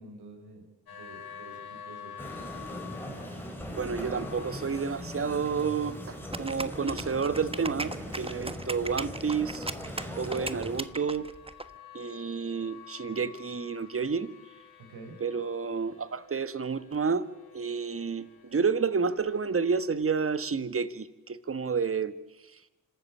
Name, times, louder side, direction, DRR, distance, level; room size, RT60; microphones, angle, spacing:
voice 1, 0.0-2.2 8.3-8.5 14.8-15.2, right 2 dB, 80° right, 5 dB, 5.0 m, -48 dB
sound 1, 0.9-20.5, left 8 dB, 70° left, 4.4 m, -51 dB
sound 2, 2.2-10.8, equal, 5° left, 5.0 m, -40 dB
voice 2, 3.7-9.7 10.2-11.3 11.9-14.3 15.2-17.2 17.5-22.1, right 5 dB, 35° right, 14 dB, 1.5 m, -30 dB
sound 3, 6.3-11.6, right 2 dB, 15° right, 1.3 m, -37 dB
26.0 x 13.5 x 8.5 m, 1.0 s
supercardioid pair, 55°, 39 cm